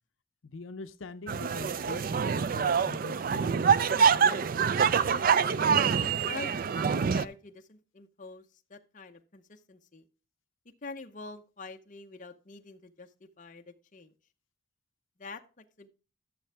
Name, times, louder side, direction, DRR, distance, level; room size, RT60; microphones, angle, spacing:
voice 1, 0.4-3.6, left 3 dB, 75° left, 10 dB, 0.6 m, -43 dB
sound 1, 1.3-7.3, right 6 dB, 45° right, 0.3 m, -25 dB
voice 2, 5.6-10.0 10.8-13.1 13.4-14.1 15.2-15.9, left 3 dB, 40° left, 5 dB, 0.7 m, -45 dB
12.0 x 6.8 x 3.4 m, 0.35 s
head